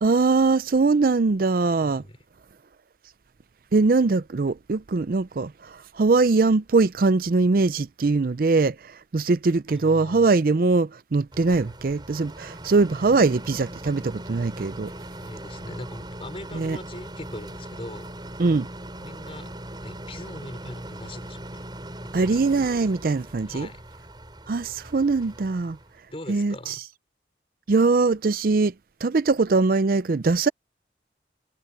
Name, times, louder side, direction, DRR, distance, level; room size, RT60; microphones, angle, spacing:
voice 1, 0.0-2.0 3.7-14.9 16.5-16.8 18.4-18.7 22.1-23.7 24.5-25.8 26.3-26.8 27.7-28.7 29.0-30.5, right 3 dB, 55° right, 0.5 m, -22 dB
voice 2, 1.8-2.2 9.7-10.3 15.2-18.2 18.9-21.6 22.0-22.4 23.5-23.9 26.1-26.8, left 1 dB, 35° left, 4.3 m, -41 dB
sound 1, 11.3-26.0, right 1 dB, 25° right, 5.4 m, -40 dB
head